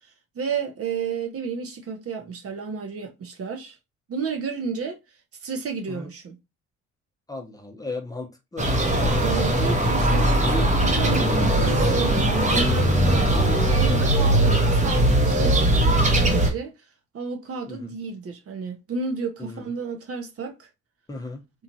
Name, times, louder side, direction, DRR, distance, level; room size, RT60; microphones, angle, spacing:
voice 1, 0.4-3.8 4.1-5.0 5.4-6.4 9.2-13.4 13.7-16.7 17.1-20.7, right 5 dB, 50° right, 0.7 m, -32 dB
voice 2, 7.3-8.7 9.0-9.3 12.9-13.2 17.7-17.9 19.4-19.6 21.1-21.4, left 3 dB, 10° left, 0.7 m, -36 dB
sound 1, 8.6-16.5, right 1 dB, 25° right, 0.8 m, -20 dB
3.0 x 2.3 x 2.6 m
cardioid pair, 90°, 30 cm